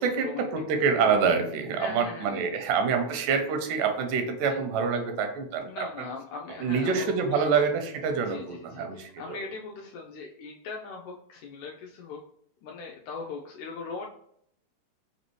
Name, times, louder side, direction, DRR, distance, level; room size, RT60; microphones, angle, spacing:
voice 1, 0.0-6.1 6.6-9.4, right 5 dB, 85° right, 5 dB, 2.2 m, -26 dB
voice 2, 1.8-2.4 4.5-4.6 5.6-7.6 8.2-12.2 12.6-14.1, left 4 dB, 85° left, 0 dB, 1.7 m, -40 dB
5.3 x 2.7 x 3.0 m, 0.68 s
omnidirectional pair, 3.7 m